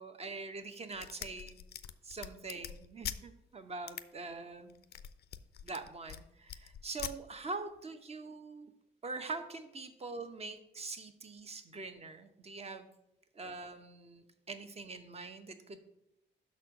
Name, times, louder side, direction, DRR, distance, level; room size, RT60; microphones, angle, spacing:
voice 1, 0.0-1.6 2.0-4.8 5.6-8.7 9.0-12.9 13.3-15.8, right 3 dB, 30° right, 8 dB, 0.8 m, -44 dB
sound 1, 0.9-3.2 3.9-4.0 4.7-6.2 6.5-7.1, left 10 dB, 55° left, 0.4 m, -43 dB
6.1 x 4.3 x 6.3 m, 0.82 s
cardioid pair, 90°, 20 cm